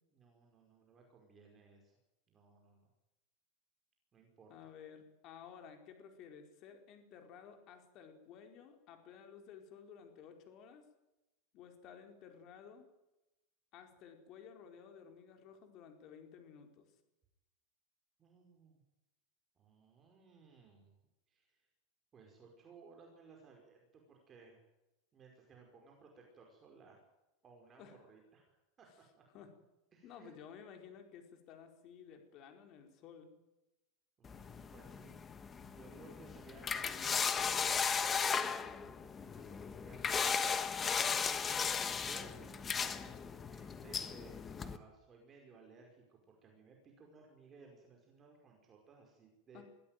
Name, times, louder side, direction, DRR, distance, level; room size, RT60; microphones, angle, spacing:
voice 1, 0.1-1.9 2.3-2.9 4.1-4.5 18.2-18.8 19.6-21.0 21.3-21.6 22.1-24.6 25.1-27.0 27.4-28.9 29.2-29.3 29.9-30.3 34.2-35.2 35.6-41.1 41.4-49.6, right 4 dB, 20° right, 1 dB, 5.1 m, -60 dB
voice 2, 4.5-10.9 11.5-12.9 13.7-16.9 27.8-28.0 29.3-29.5 30.0-33.3 49.5-49.6, left 7 dB, 35° left, 5 dB, 4.5 m, -54 dB
sound 1, 34.2-44.8, left 6 dB, 15° left, 1.3 m, -36 dB
23.0 x 16.5 x 9.4 m, 0.96 s
supercardioid pair, 160°, 0 cm